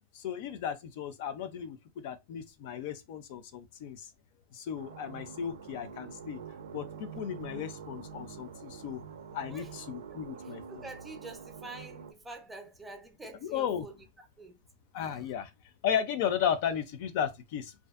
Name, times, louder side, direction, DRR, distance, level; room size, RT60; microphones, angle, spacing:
voice 1, 0.1-1.8 2.0-4.0 4.5-6.4 6.7-9.0 9.3-10.6 13.4-13.9 14.9-15.5 15.8-17.9, left 8 dB, 55° left, 0.4 m, -34 dB
sound 1, 4.7-12.1, right 6 dB, 85° right, 0.4 m, -46 dB
voice 2, 10.4-14.0 14.4-14.6 15.0-15.1, right 3 dB, 10° right, 0.5 m, -47 dB
2.5 x 2.4 x 2.4 m
supercardioid pair, 145°, 0 cm